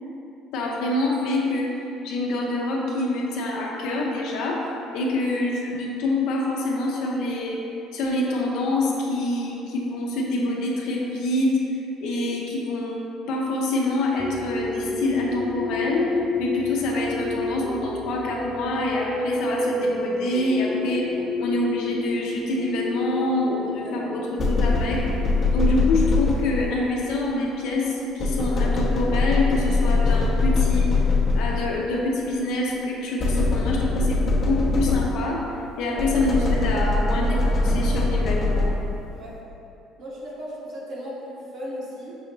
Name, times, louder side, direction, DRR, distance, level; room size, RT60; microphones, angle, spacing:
voice 1, 0.5-1.8 2.0-4.7 4.9-7.6 7.9-11.6 12.0-21.1 21.4-25.1 25.5-30.9 31.3-35.4 35.8-38.7, left 2 dB, 75° left, -2 dB, 0.7 m, -26 dB
sound 1, 14.2-25.2, left 2 dB, ahead, 0.3 m, -30 dB
sound 2, 24.4-26.9 28.2-31.8 33.2-35.4 36.0-39.1, left 3 dB, 40° left, 0.7 m, -22 dB
voice 2, 40.0-42.2, equal, 60° right, -5 dB, 1.1 m, -36 dB
6.2 x 2.7 x 2.9 m, 2.8 s
cardioid pair, 105°, 0 cm